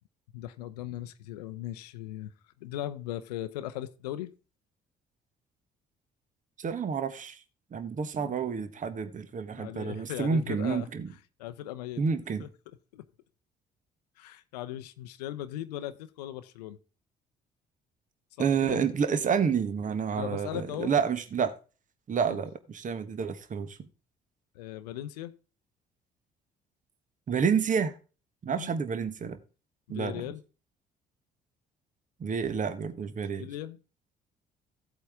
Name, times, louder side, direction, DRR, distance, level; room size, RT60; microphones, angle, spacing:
voice 1, 0.3-2.3 2.6-4.3 8.2-8.3 9.5-10.9 11.4-12.0 12.4-12.5 12.9-13.1 14.2-16.8 18.4-18.8 20.1-20.9 22.3-22.4 24.5-25.4 28.5-28.7 29.9-30.4 33.2-33.8, left 13 dB, 75° left, 0.6 m, -38 dB
voice 2, 6.6-7.4 7.7-11.1 12.0-12.4 18.4-21.5 22.1-23.9 27.3-27.9 28.4-29.4 29.9-30.2 32.2-33.5, right 6 dB, 40° right, 1.3 m, -29 dB
15.5 x 8.2 x 3.5 m
figure-of-eight pair, 50°, 21 cm